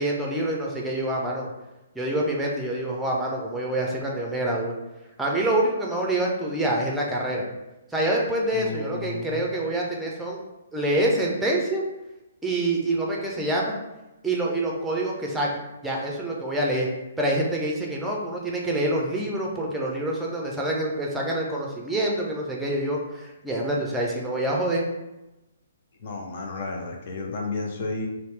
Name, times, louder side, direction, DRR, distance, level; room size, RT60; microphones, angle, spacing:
voice 1, 0.0-1.5 1.9-4.8 5.2-7.4 7.9-10.4 10.7-11.8 12.4-13.8 14.2-15.5 15.8-16.9 17.2-24.8, right 1 dB, 5° right, -2 dB, 0.6 m, -26 dB
voice 2, 8.5-9.4 26.0-28.1, left 3 dB, 45° left, 2 dB, 0.6 m, -32 dB
4.0 x 2.1 x 3.2 m, 0.99 s
figure-of-eight pair, 125°, 0 cm